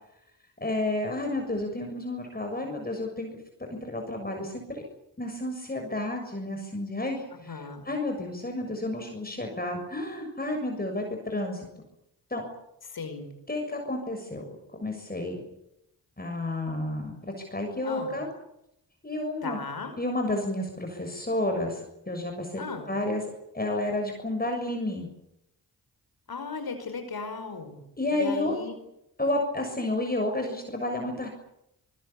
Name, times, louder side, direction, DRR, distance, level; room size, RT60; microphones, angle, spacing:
voice 1, 0.6-4.9 5.2-11.7 12.3-12.4 13.5-14.4 14.8-15.4 16.2-17.2 17.5-18.3 19.0-19.6 20.0-21.8 22.1-22.6 22.9-23.2 23.5-25.1 28.0-28.5 29.2-31.3, left 1 dB, 20° left, 3 dB, 6.8 m, -31 dB
voice 2, 7.3-7.8 12.9-13.3 17.8-18.2 19.4-19.9 22.6-22.9 26.3-27.8 28.1-28.8, left 4 dB, 60° left, 7 dB, 5.2 m, -37 dB
24.5 x 20.5 x 8.6 m, 0.83 s
supercardioid pair, 45°, 42 cm